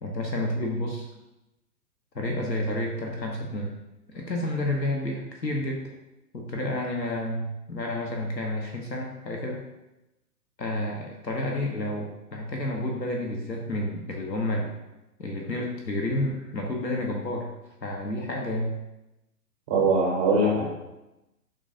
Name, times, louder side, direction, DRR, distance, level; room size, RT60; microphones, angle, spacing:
voice 1, 0.0-1.1 2.1-3.7 4.1-5.8 6.3-9.6 10.6-14.7 15.2-17.5 17.8-18.7, left 1 dB, 85° left, 1 dB, 1.1 m, -30 dB
voice 2, 19.7-20.6, right 2 dB, 5° right, -3 dB, 0.4 m, -22 dB
11.0 x 3.9 x 2.6 m, 0.95 s
figure-of-eight pair, 120°, 49 cm